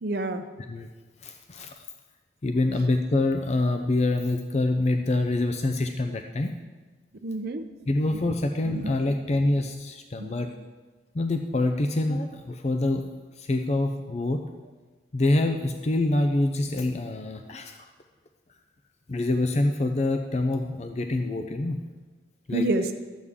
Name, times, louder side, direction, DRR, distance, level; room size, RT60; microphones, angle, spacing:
voice 1, 0.0-0.4 7.2-7.7 8.1-8.2 8.7-9.0 10.2-10.4 22.5-22.9, right 2 dB, 55° right, 7 dB, 0.6 m, -28 dB
voice 2, 1.2-1.8 2.4-6.5 7.9-10.5 11.1-13.1 13.4-14.4 15.1-17.9 19.1-21.8 22.5-22.7, left 2 dB, 35° left, 5 dB, 0.4 m, -26 dB
12.5 x 8.3 x 3.6 m, 1.3 s
head